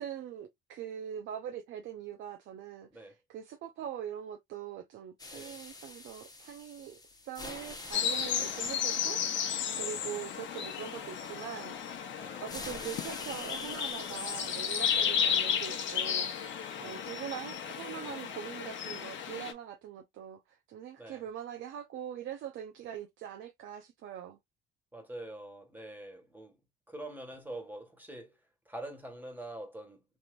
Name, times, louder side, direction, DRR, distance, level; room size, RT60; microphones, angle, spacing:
voice 1, 0.0-7.0 7.2-12.1 12.4-24.4, right 9 dB, 75° right, 0.7 m, -43 dB
sound 1, 5.2-11.8 12.5-16.5, left 2 dB, 20° left, 1.0 m, -48 dB
sound 2, 7.9-19.5, left 8 dB, 75° left, 0.9 m, -33 dB
voice 2, 9.7-10.1 12.2-12.5 14.9-15.2 16.7-17.1 21.0-21.3 24.9-26.6 26.9-28.4 28.6-30.0, right 1 dB, 10° right, 1.6 m, -45 dB
3.5 x 2.9 x 2.5 m
cardioid pair, 90°, 20 cm